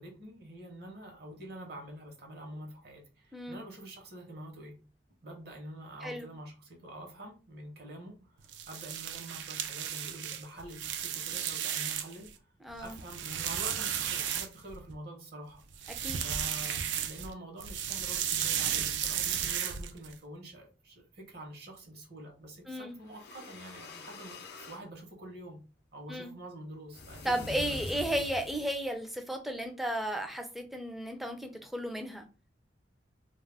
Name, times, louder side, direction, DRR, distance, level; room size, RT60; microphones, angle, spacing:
voice 1, 0.0-4.8 5.2-12.3 12.8-15.6 16.1-25.6 25.9-27.8 28.1-28.2, right 1 dB, 65° right, 2 dB, 0.8 m, -46 dB
sound 1, 8.4-12.3 12.7-14.9 15.7-17.3 17.6-20.1, right 9 dB, 90° right, 0.4 m, -34 dB
voice 2, 12.6-13.0 16.0-16.2 22.7-23.0 26.1-26.3 27.2-32.3, right 1 dB, ahead, 4 dB, 0.4 m, -34 dB
sound 2, 23.0-24.9 26.9-28.8, left 3 dB, 60° left, 0.5 m, -45 dB
2.3 x 2.0 x 3.3 m, 0.33 s
head